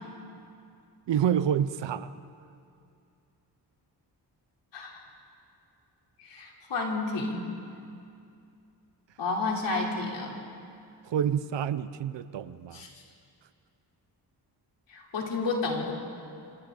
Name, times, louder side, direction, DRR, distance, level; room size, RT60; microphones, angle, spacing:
voice 1, 1.1-2.1 11.0-12.8, right 9 dB, 85° right, 15 dB, 0.8 m, -28 dB
voice 2, 6.3-7.4 9.2-10.3 12.7-12.9 14.9-15.9, left 3 dB, 85° left, -1 dB, 3.5 m, -31 dB
28.0 x 26.0 x 3.9 m, 2.5 s
wide cardioid pair, 105°, 42 cm